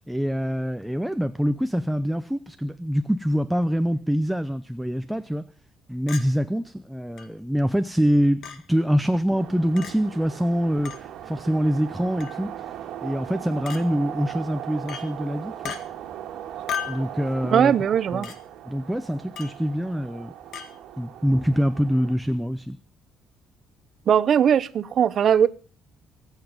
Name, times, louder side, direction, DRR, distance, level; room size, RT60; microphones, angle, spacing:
voice 1, 0.0-5.4 5.9-12.7 13.0-15.7 16.9-17.7 18.1-18.3 18.7-20.3 21.0-22.8, equal, ahead, 0.6 m, -25 dB
Chink clink, 6.1-6.3 7.2-7.3 8.4-8.6 9.8-9.9 10.9-11.0 12.2-12.4 13.7-13.8 14.9-15.1 15.6-15.8 16.7-17.0 18.2-18.4 19.4-19.6 20.5-20.7, left 8 dB, 65° left, 1.9 m, -34 dB
sound 1, 9.4-22.2, right 10 dB, 70° right, 1.7 m, -39 dB
voice 2, 17.5-18.3 24.1-25.5, right 8 dB, 50° right, 0.7 m, -19 dB
24.0 x 8.2 x 5.2 m
cardioid pair, 130°, 0 cm